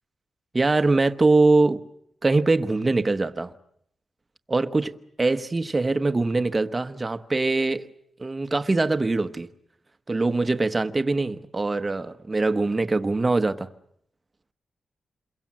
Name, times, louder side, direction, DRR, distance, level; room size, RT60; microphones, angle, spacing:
voice 1, 0.5-1.8 2.2-3.5 4.5-7.9 8.2-9.5 10.1-13.7, right 3 dB, 20° right, 1.1 m, -23 dB
28.5 x 22.5 x 7.5 m
wide cardioid pair, 160°, 0 cm